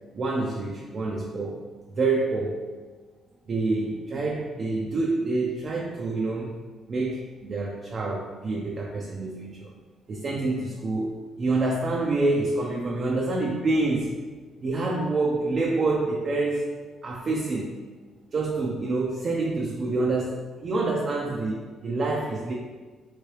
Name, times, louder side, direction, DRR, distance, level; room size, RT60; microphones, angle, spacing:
voice 1, 0.1-1.6 1.9-2.7 3.5-6.6 6.9-9.7 10.1-14.2 14.6-16.7 17.0-17.8 18.3-22.5, right 2 dB, 45° right, -1 dB, 0.4 m, -27 dB
3.0 x 2.7 x 3.1 m, 1.4 s
cardioid pair, 90°, 0 cm